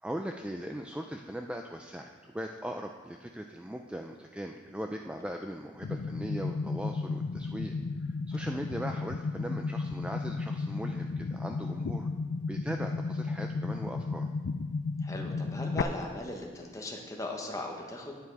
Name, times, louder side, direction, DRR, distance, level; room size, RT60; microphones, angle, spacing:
voice 1, 0.0-7.7 8.0-12.1 12.5-14.3, right 1 dB, 5° right, 3 dB, 0.4 m, -39 dB
sound 1, 5.8-15.8, left 4 dB, 70° left, 0.4 m, -34 dB
voice 2, 15.0-18.1, left 1 dB, 15° left, 1 dB, 1.2 m, -39 dB
9.6 x 9.2 x 4.7 m, 1.5 s
head